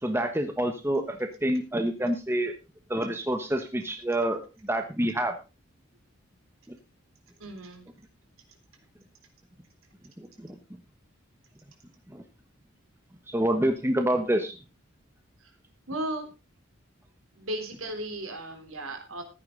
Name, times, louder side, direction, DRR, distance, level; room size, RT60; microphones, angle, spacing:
voice 1, 0.0-2.5 2.9-5.4 6.7-6.8 10.2-10.6 12.1-12.2 13.3-14.6, right 1 dB, 10° right, 6 dB, 1.2 m, -27 dB
voice 2, 7.4-7.9 15.4-15.6 15.9-16.3 17.4-19.2, right 1 dB, 80° right, 5 dB, 3.8 m, -35 dB
15.0 x 10.5 x 3.9 m, 0.29 s
head